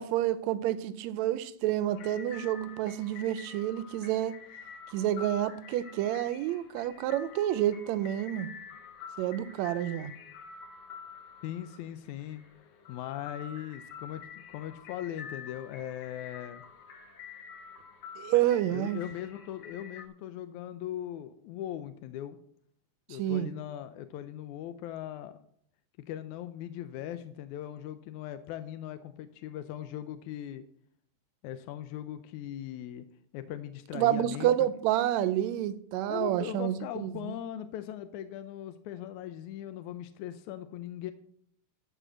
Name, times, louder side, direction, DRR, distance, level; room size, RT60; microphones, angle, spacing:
voice 1, 0.0-4.4 4.9-8.5 9.2-10.1 18.2-19.0 23.2-23.5 33.9-37.3, right 12 dB, 80° right, 1.8 m, -29 dB
sound 1, 1.9-20.1, left 6 dB, 60° left, 2.2 m, -48 dB
voice 2, 11.4-12.4 12.9-14.2 14.5-16.6 18.7-22.4 23.1-25.4 26.1-30.6 31.4-33.0 33.3-34.5 35.2-35.3 36.1-41.1, left 11 dB, 90° left, 2.1 m, -39 dB
13.0 x 5.0 x 7.5 m
omnidirectional pair, 3.4 m